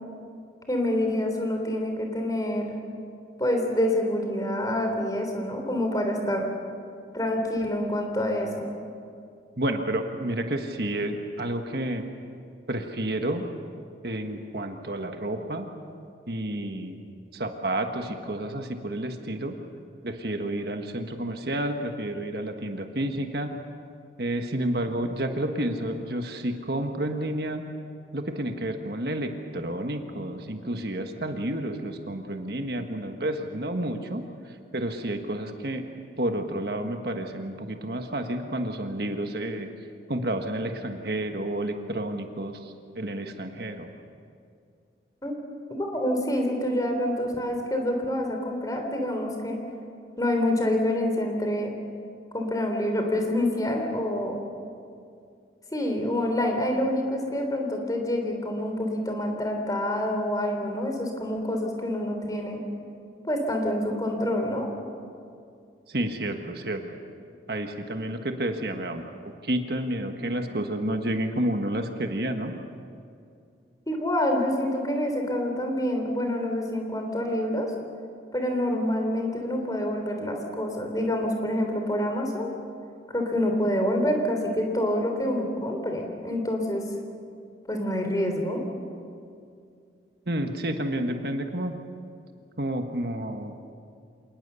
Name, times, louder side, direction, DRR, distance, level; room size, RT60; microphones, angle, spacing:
voice 1, 0.7-2.8 3.4-6.4 7.1-8.7 45.2-45.3 45.7-49.6 50.2-51.7 52.3-54.4 55.7-62.6 63.2-64.7 73.9-77.7 78.3-82.5 83.1-86.8 87.7-88.6, left 1 dB, 20° left, 3 dB, 3.5 m, -27 dB
voice 2, 9.6-12.0 12.7-13.5 14.0-15.7 16.3-17.0 17.3-19.5 20.0-23.5 24.2-27.6 28.1-39.7 40.1-43.9 65.9-66.8 67.5-69.1 69.4-72.5 90.3-91.8 92.6-93.5, right 1 dB, 55° right, 5 dB, 1.5 m, -30 dB
27.5 x 19.5 x 7.0 m, 2.4 s
head